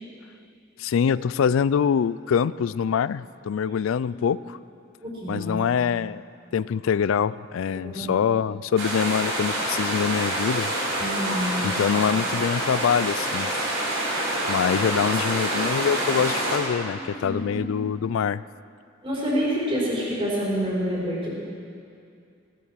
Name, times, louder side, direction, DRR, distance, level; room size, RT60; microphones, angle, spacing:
voice 1, 0.8-4.6 5.3-6.2 6.5-10.7 11.6-13.5 14.5-18.4, left 7 dB, 85° left, 18 dB, 0.3 m, -24 dB
voice 2, 5.0-5.6 7.7-8.1 11.0-11.6 16.9-17.7 19.0-21.3, equal, 30° right, -7 dB, 4.5 m, -28 dB
sound 1, 8.8-16.6, right 1 dB, 65° right, 3.9 m, -27 dB
17.5 x 9.8 x 6.3 m, 2.4 s
head